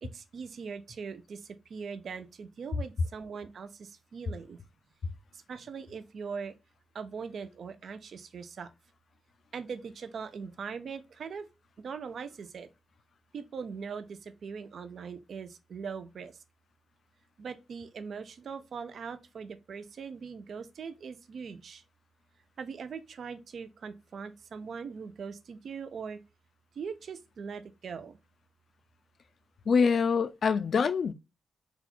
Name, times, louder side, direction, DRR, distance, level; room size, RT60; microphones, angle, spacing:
voice 1, 0.0-4.6 5.3-6.5 6.9-8.7 9.5-11.5 11.8-12.7 13.3-16.3 17.4-21.8 22.6-26.2 26.8-28.2, right 6 dB, 60° right, 0.5 m, -41 dB
voice 2, 29.7-31.1, left 5 dB, 50° left, 0.4 m, -25 dB
4.1 x 2.3 x 4.2 m
wide cardioid pair, 125°, 0 cm